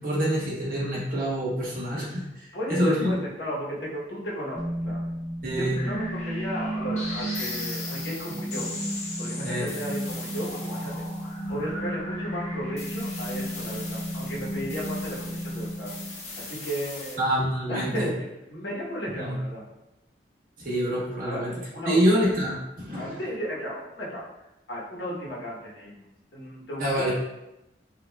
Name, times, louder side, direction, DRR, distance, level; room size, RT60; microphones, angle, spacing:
voice 1, 0.0-2.2 2.7-3.1 5.4-5.8 9.4-9.7 17.2-18.1 19.1-19.4 20.6-21.5 21.8-23.1 26.8-27.1, equal, 50° right, -5 dB, 1.0 m, -26 dB
voice 2, 2.5-5.0 5.6-8.7 9.2-10.9 11.5-15.9 16.4-17.3 17.7-19.7 21.3-21.5 21.7-22.2 23.0-24.2 24.7-26.1 26.3-27.1, equal, 75° left, -5 dB, 1.0 m, -34 dB
sound 1, 4.5-16.5, right 1 dB, 15° right, 0.6 m, -33 dB
sound 2, 5.7-17.1, left 2 dB, 35° left, 0.6 m, -39 dB
4.8 x 2.3 x 2.2 m, 0.91 s
head